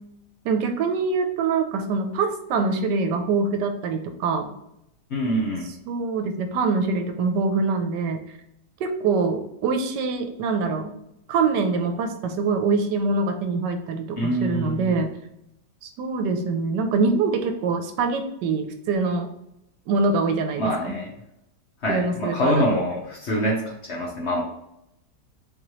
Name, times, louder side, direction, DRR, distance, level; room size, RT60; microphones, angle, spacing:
voice 1, 0.4-4.5 5.9-8.2 8.8-10.9 11.3-15.1 15.8-19.3 19.9-21.0 21.9-22.6, right 4 dB, 85° right, 6 dB, 1.2 m, -24 dB
voice 2, 5.1-5.7 14.2-14.9 20.6-21.1 21.8-24.4, equal, 55° left, -2 dB, 0.8 m, -25 dB
3.8 x 2.9 x 3.0 m, 0.80 s
omnidirectional pair, 1.8 m